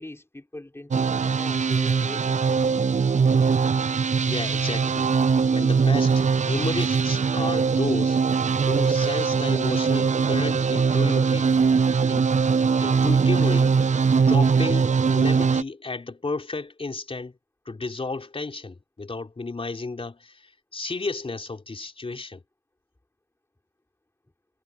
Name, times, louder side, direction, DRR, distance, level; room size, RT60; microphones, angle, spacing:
voice 1, 0.0-2.6, left 1 dB, 15° left, 4.9 m, -41 dB
sound 1, 0.9-15.6, right 5 dB, 45° right, 0.6 m, -21 dB
voice 2, 4.2-5.1 5.5-6.1 6.5-8.2 8.7-11.5 12.1-12.4 12.8-13.8 14.2-17.3 17.7-22.4, left 3 dB, 35° left, 4.1 m, -32 dB
wide cardioid pair, 125°, 17 cm